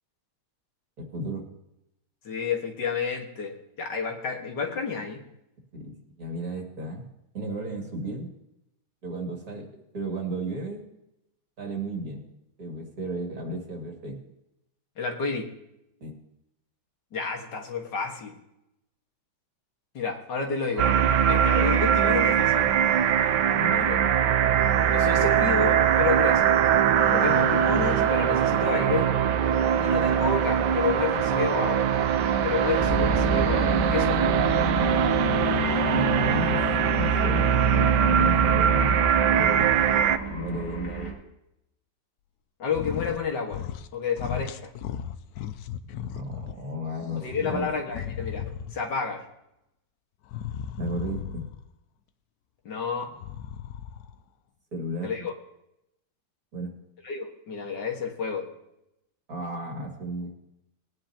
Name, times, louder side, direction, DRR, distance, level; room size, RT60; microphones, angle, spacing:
voice 1, 1.0-1.5 5.7-7.1 7.3-8.3 9.0-9.7 9.9-10.8 11.6-12.2 12.6-14.2 16.0-16.2 23.5-23.8 35.8-36.6 36.9-39.7 40.2-41.1 46.0-47.7 50.8-51.4 54.7-55.3 56.5-56.7 59.3-60.3, right 1 dB, 60° right, 0 dB, 2.8 m, -34 dB
voice 2, 2.2-5.2 15.0-15.5 17.1-18.3 19.9-20.9 21.3-22.7 23.7-24.0 24.9-26.6 27.1-29.1 29.8-31.9 32.4-34.2 42.6-43.6 43.9-44.7 47.2-48.4 48.7-49.2 52.7-53.2 55.0-55.3 57.0-58.5, left 5 dB, 90° left, 2 dB, 2.3 m, -30 dB
sound 1, 20.8-40.2, right 9 dB, 80° right, 1.3 m, -22 dB
sound 2, 26.9-41.1, left 2 dB, 50° left, 2.4 m, -32 dB
sound 3, 42.7-43.2 43.5-43.9 44.2-46.5 47.0-48.9 50.3-51.7 53.1-54.2, left 9 dB, 70° left, 1.1 m, -36 dB
20.0 x 9.8 x 2.9 m, 0.85 s
omnidirectional pair, 1.8 m